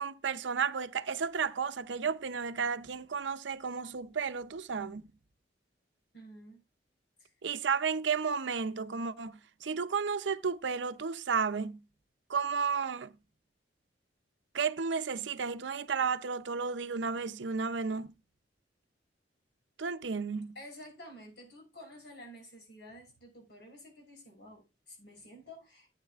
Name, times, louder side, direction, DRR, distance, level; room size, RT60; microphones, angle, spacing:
voice 1, 0.0-5.0 7.4-11.8 12.3-13.1 14.5-18.1 19.8-20.5, right 5 dB, 80° right, 0.6 m, -33 dB
voice 2, 6.1-6.6 7.2-7.3 20.5-25.9, equal, 65° left, 6.2 m, -51 dB
15.0 x 8.9 x 2.4 m
head